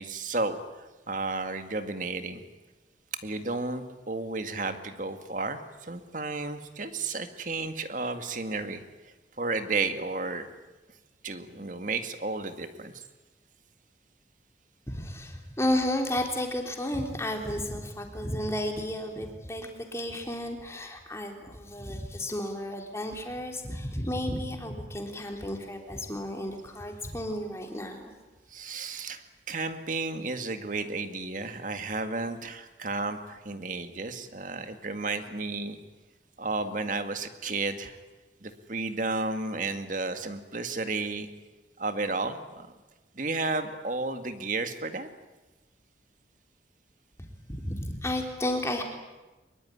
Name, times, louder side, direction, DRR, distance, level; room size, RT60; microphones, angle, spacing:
voice 1, 0.0-2.4 3.2-8.8 9.4-10.5 11.2-13.0 28.5-35.8 36.4-38.0 38.4-41.3 41.8-42.7 43.1-45.1, right 3 dB, 45° right, 8 dB, 2.0 m, -32 dB
voice 2, 14.9-28.1 47.2-48.8, left 1 dB, 15° left, 3 dB, 3.5 m, -32 dB
24.0 x 22.5 x 10.0 m, 1.1 s
head